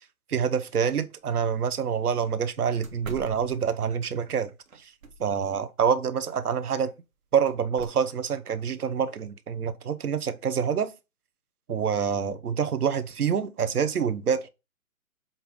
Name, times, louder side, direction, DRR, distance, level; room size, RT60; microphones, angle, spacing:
voice 1, 0.3-4.5 4.8-4.9 5.2-6.9 7.3-10.9 11.7-14.5, right 7 dB, 85° right, 1.1 m, -26 dB
sound 1, 1.2-1.3 1.7-1.8 2.2-2.3 2.8-4.1 4.7-5.5 7.5-7.9, right 2 dB, 65° right, 1.6 m, -43 dB
7.5 x 2.8 x 5.3 m
hypercardioid pair, 170°, 44 cm